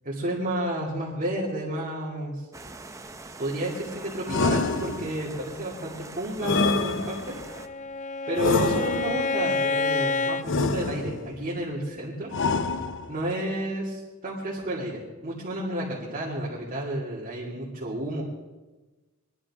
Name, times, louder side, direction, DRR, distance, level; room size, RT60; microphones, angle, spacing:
voice 1, 0.1-2.4 3.4-7.4 8.3-12.3 13.1-18.2, right 1 dB, 40° right, -6 dB, 2.8 m, -31 dB
sound 1, 2.5-7.7, right 2 dB, 15° right, 0.7 m, -43 dB
sound 2, 4.3-5.3 6.4-7.5 8.4-9.3 10.4-11.4 12.3-13.3, left 3 dB, 60° left, 0.7 m, -26 dB
Bowed string instrument, 7.3-10.5, left 3 dB, 35° left, 0.4 m, -28 dB
22.5 x 12.5 x 3.7 m, 1.2 s
head